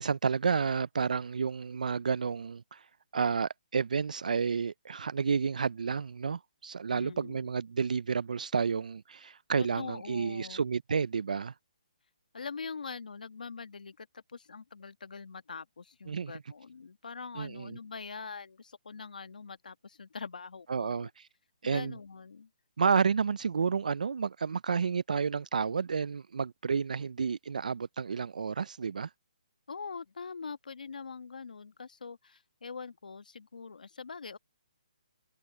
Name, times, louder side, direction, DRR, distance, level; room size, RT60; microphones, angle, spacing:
voice 1, 0.0-2.8 3.1-11.5 16.1-16.3 17.4-17.8 20.7-21.1 21.6-22.0 22.8-29.1, right 6 dB, 70° right, 0.4 m, -30 dB
voice 2, 6.9-7.5 9.6-10.6 12.3-21.1 21.6-22.5 29.7-34.4, left 5 dB, 80° left, 1.3 m, -43 dB
hypercardioid pair, 175°, 4 cm